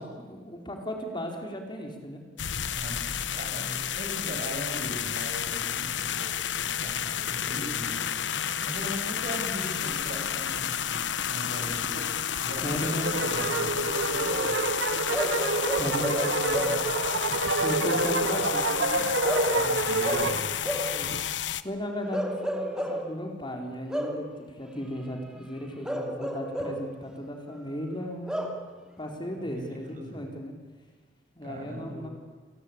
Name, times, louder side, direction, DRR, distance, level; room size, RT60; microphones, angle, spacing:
voice 1, 0.0-2.2 12.6-13.2 15.7-16.8 17.6-19.0 20.2-21.1 21.6-28.6 29.0-30.5 31.3-32.1, equal, 25° left, 2 dB, 4.1 m, -36 dB
sound 1, 2.4-21.6, left 8 dB, 85° left, 1.0 m, -31 dB
voice 2, 2.7-14.7 17.8-18.0 19.5-20.5 29.4-30.3 31.4-32.1, equal, 50° right, 3 dB, 6.7 m, -39 dB
sound 2, 13.0-20.4, right 3 dB, 85° right, 1.6 m, -28 dB
Bark / Livestock farm animals working animals, 15.1-16.9 19.2-21.0 22.1-23.1 23.9-24.3 25.8-26.9 28.3-28.7, equal, 5° right, 2.9 m, -32 dB
29.0 x 21.5 x 8.7 m, 1.5 s
head